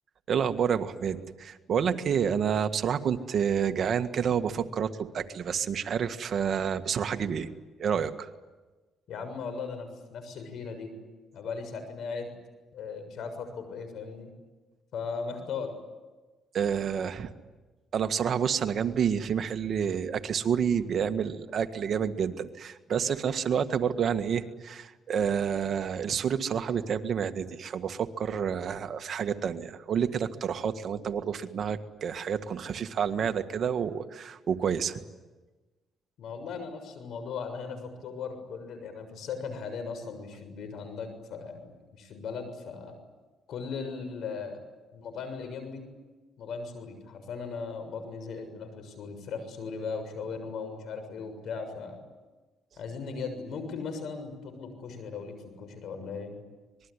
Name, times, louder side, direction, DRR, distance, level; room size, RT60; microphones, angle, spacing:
voice 1, 0.3-7.5 7.8-8.3 16.5-17.3 17.9-35.0, right 7 dB, 60° right, 8 dB, 1.7 m, -29 dB
voice 2, 9.1-10.9 11.3-12.3 12.7-14.3 14.9-15.7 36.2-43.0 43.5-44.6 44.9-45.9 46.4-52.0 52.8-56.3, left 5 dB, 75° left, 8 dB, 6.8 m, -38 dB
25.5 x 21.5 x 9.9 m, 1.2 s
cardioid pair, 90°, 0 cm